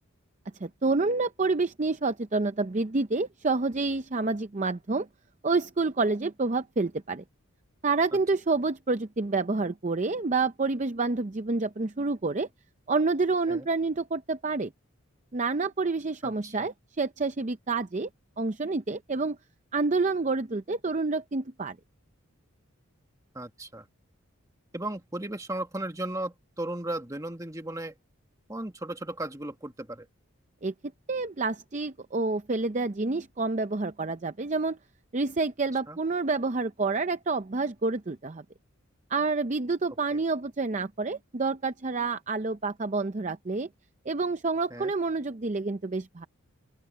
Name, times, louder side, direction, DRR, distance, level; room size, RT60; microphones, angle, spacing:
voice 1, 0.6-5.1 5.4-7.2 7.8-12.5 12.9-14.7 15.3-18.1 18.4-19.4 19.7-21.8 30.6-30.7 31.1-34.8 35.1-38.4 39.1-43.7 44.1-46.3, right 3 dB, 35° right, 0.6 m, -28 dB
voice 2, 16.2-16.7 23.3-23.9 24.7-27.9 28.5-30.1 35.9-36.0 40.1-40.2 44.7-44.9, right 1 dB, 15° right, 1.7 m, -36 dB
open air
head